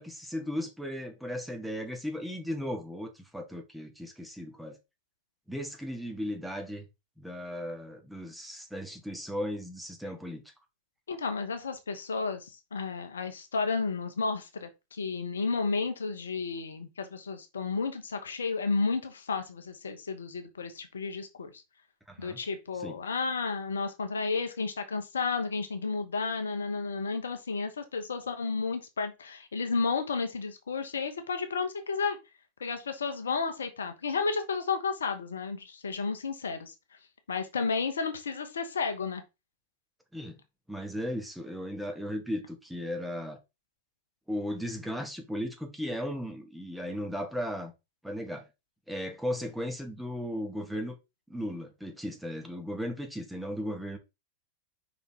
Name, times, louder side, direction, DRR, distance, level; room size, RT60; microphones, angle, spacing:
voice 1, 0.0-4.8 5.5-6.8 7.2-10.4 22.1-22.4 22.8-22.9 40.1-40.4 40.7-43.4 44.3-47.7 48.0-48.5 48.9-51.0 51.3-54.0, equal, ahead, 1.4 m, -36 dB
voice 2, 11.1-21.5 22.2-32.2 32.6-36.7 37.3-39.2, left 4 dB, 70° left, 1.1 m, -32 dB
5.3 x 4.1 x 4.5 m
figure-of-eight pair, 90°, 0 cm